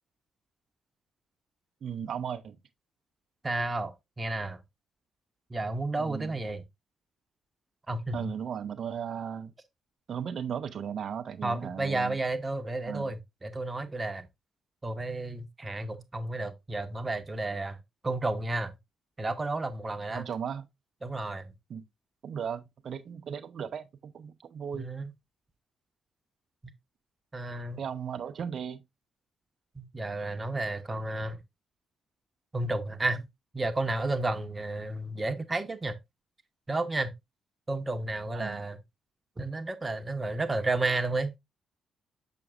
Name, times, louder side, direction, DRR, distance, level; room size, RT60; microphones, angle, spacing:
voice 1, 1.8-2.6 6.0-6.4 8.1-9.5 10.1-12.2 12.9-13.1 20.1-20.7 21.7-21.9 22.2-24.9 27.8-28.8 38.3-38.6, right 7 dB, 50° right, 0.7 m, -36 dB
voice 2, 3.4-4.6 5.5-6.6 7.9-8.3 11.4-14.3 14.8-17.8 18.0-18.7 19.2-20.2 21.0-21.5 24.7-25.1 27.3-27.8 29.7-31.4 32.5-33.2 33.5-36.0 36.7-37.1 37.7-38.8 39.4-41.4, right 2 dB, 25° right, 0.9 m, -32 dB
6.8 x 6.0 x 2.5 m
figure-of-eight pair, 40°, 0 cm